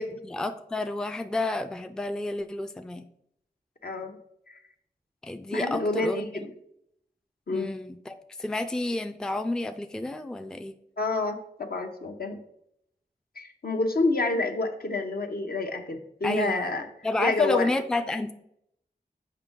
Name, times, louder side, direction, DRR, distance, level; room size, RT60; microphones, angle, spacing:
voice 1, 0.0-3.1 5.2-6.3 7.5-10.8 16.2-16.7 17.0-18.3, left 2 dB, 5° left, 8 dB, 0.4 m, -30 dB
voice 2, 3.8-4.2 4.5-4.6 5.5-6.5 7.5-7.7 11.0-12.4 13.4-16.9 17.2-17.7, left 3 dB, 65° left, 4 dB, 0.8 m, -28 dB
6.6 x 5.2 x 3.6 m, 0.76 s
wide cardioid pair, 65°, 17 cm